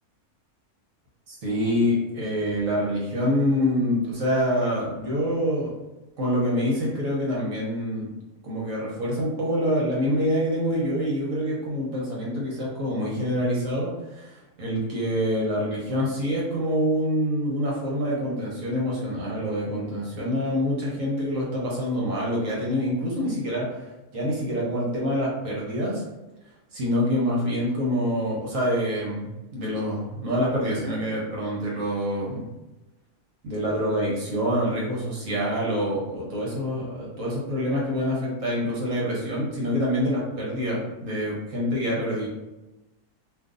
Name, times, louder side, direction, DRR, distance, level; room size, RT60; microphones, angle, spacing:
voice 1, 1.3-5.7 6.2-8.1 8.4-14.3 14.6-23.7 24.1-26.0 26.7-32.5 33.4-42.3, equal, 65° right, -4 dB, 1.2 m, -26 dB
2.6 x 2.5 x 3.7 m, 1.0 s
omnidirectional pair, 1.5 m